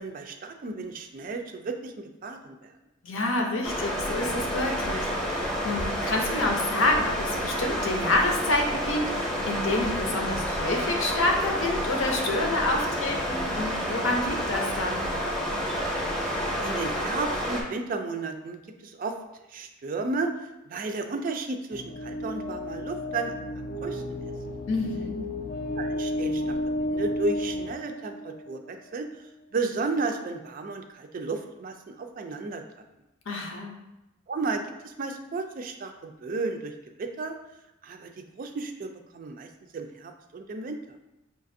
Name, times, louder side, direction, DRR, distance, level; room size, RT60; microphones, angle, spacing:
voice 1, 0.0-2.7 16.6-19.1 19.5-20.3 20.7-24.2 25.7-26.6 26.8-29.1 29.5-32.6 34.3-36.7 37.0-37.4 37.8-39.5 39.7-40.8, right 3 dB, 45° right, 6 dB, 0.3 m, -33 dB
voice 2, 3.0-15.1 24.7-25.4 33.3-33.7, left 2 dB, 75° left, 2 dB, 0.7 m, -28 dB
sound 1, 3.6-17.6, equal, 5° left, 0.7 m, -29 dB
sound 2, 21.7-28.7, left 1 dB, 45° left, 0.3 m, -32 dB
5.7 x 2.4 x 2.6 m, 0.93 s
head